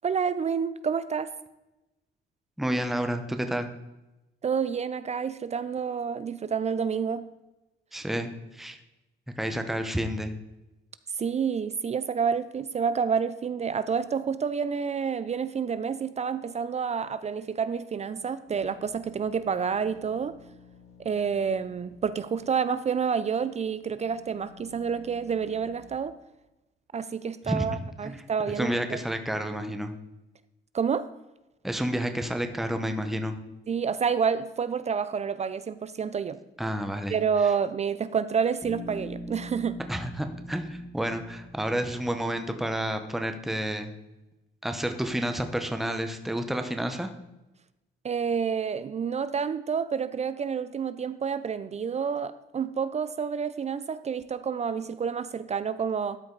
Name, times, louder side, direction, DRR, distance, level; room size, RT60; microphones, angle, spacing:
voice 1, 0.0-1.3 4.4-7.3 11.2-20.4 21.0-26.2 26.9-29.0 30.7-31.1 33.7-36.4 37.1-39.8 48.0-56.2, right 6 dB, 35° right, 14 dB, 0.4 m, -29 dB
voice 2, 2.6-3.7 7.9-8.8 9.4-10.3 27.5-27.6 28.0-28.2 28.6-30.0 31.6-33.4 36.6-37.1 39.9-43.9 44.6-47.1, equal, ahead, 7 dB, 0.8 m, -30 dB
sound 1, 18.5-22.0 22.3-22.4 23.0-25.8, left 7 dB, 80° left, 3.5 m, -54 dB
Bass guitar, 38.6-42.6, equal, 15° left, 2.5 m, -42 dB
12.5 x 5.1 x 3.9 m, 0.99 s
cardioid pair, 90°, 20 cm